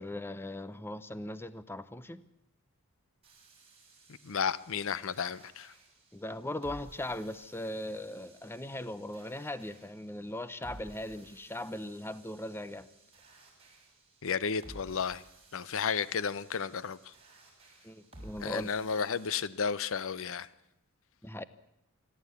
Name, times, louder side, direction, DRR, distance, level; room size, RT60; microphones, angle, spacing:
voice 1, 0.0-2.2 6.1-12.9 17.8-18.7 21.2-21.4, left 1 dB, 10° left, 0.7 m, -39 dB
sound 1, 3.2-19.3, right 1 dB, 30° right, 6.3 m, -56 dB
voice 2, 4.2-5.7 14.2-15.2 15.5-17.1 18.4-20.5, left 6 dB, 65° left, 0.7 m, -33 dB
27.5 x 11.5 x 8.3 m
head